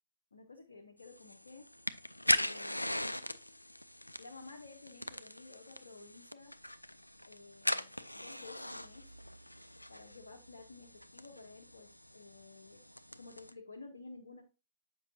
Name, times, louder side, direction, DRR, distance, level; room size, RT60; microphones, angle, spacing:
voice 1, 0.3-1.7 2.2-3.0 4.2-6.5 7.2-9.2 9.9-12.8 13.2-14.4, left 3 dB, 70° left, 1 dB, 0.7 m, -53 dB
sound 1, 1.0-13.5, left 1 dB, 90° left, 0.3 m, -40 dB
7.3 x 5.3 x 2.7 m, 0.29 s
figure-of-eight pair, 110°, 0 cm